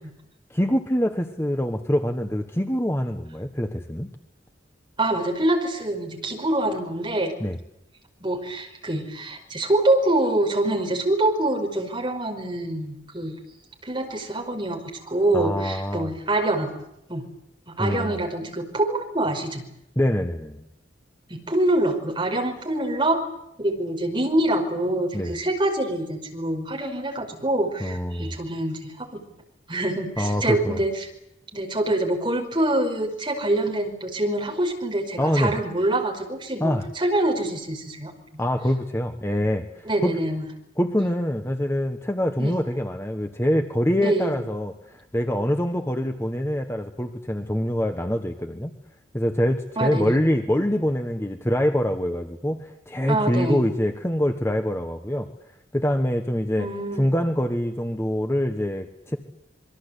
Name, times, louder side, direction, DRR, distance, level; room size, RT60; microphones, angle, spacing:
voice 1, 0.5-4.1 7.4-7.6 15.3-16.1 17.8-18.2 19.9-20.6 25.1-25.3 27.8-28.4 30.2-30.8 35.2-35.5 36.6-36.9 38.4-40.2 40.8-48.7 49.1-55.3 55.7-56.7 57.0-59.2, equal, 15° left, 5 dB, 1.3 m, -25 dB
voice 2, 5.0-7.4 8.2-13.4 13.8-16.7 17.1-17.3 17.7-19.6 21.3-23.3 23.6-29.2 29.7-31.1 31.5-38.4 39.9-40.5 42.4-42.6 44.0-44.4 49.8-50.2 53.1-53.6 56.6-57.1, right 1 dB, 25° right, 2 dB, 5.4 m, -25 dB
27.0 x 23.0 x 8.3 m, 0.81 s
head